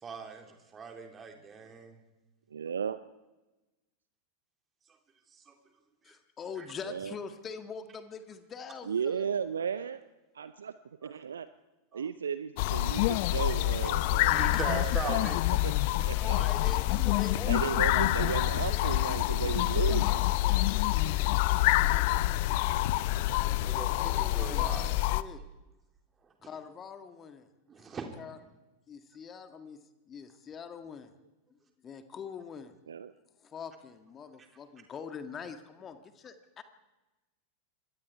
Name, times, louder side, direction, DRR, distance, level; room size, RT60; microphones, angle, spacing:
voice 1, 0.0-2.0 5.5-5.6 6.6-6.7 11.0-11.1 11.9-12.0 14.3-15.6 23.6-24.9 27.7-28.0, right 5 dB, 20° right, 3 dB, 3.5 m, -40 dB
voice 2, 2.5-3.0 6.9-7.1 8.9-10.0 10.3-10.7 11.0-11.5 11.9-15.3 15.6-15.7 16.0-16.5 17.4-20.2 32.9-33.1, right 7 dB, 70° right, 14 dB, 0.7 m, -34 dB
voice 3, 6.0-9.3 16.1-20.2 20.4-20.7 23.8-24.8 25.1-25.4 26.4-27.5 28.2-28.4 28.9-29.8 30.1-31.1 31.8-32.8 33.4-36.6, left 6 dB, 25° left, 8 dB, 1.7 m, -44 dB
sound 1, 12.6-25.2, left 17 dB, 50° left, 0.7 m, -27 dB
26.5 x 21.0 x 4.7 m, 1.1 s
figure-of-eight pair, 90°, 0 cm